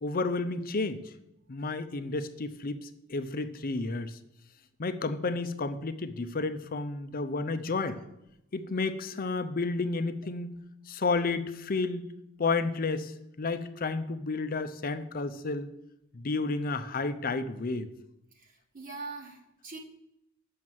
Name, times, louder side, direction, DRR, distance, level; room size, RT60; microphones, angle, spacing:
voice 1, 0.0-1.0 1.5-4.2 4.8-8.0 8.5-10.5 10.9-12.0 12.4-13.1 13.4-15.7 16.1-17.9, left 3 dB, 45° left, 11 dB, 0.6 m, -31 dB
voice 2, 18.4-19.8, right 3 dB, 45° right, 0 dB, 1.1 m, -43 dB
6.4 x 6.1 x 7.4 m, 0.84 s
head